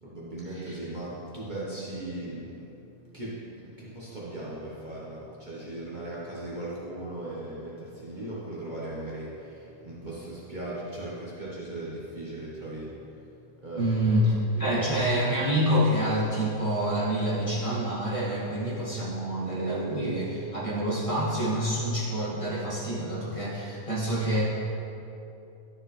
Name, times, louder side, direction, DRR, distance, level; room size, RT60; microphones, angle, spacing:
voice 1, 0.0-2.6 3.1-13.2 13.6-14.2 14.5-15.1, right 1 dB, 35° right, -8 dB, 1.3 m, -38 dB
voice 2, 13.7-24.4, equal, 25° left, -9 dB, 2.1 m, -27 dB
12.0 x 5.3 x 3.2 m, 2.8 s
omnidirectional pair, 1.4 m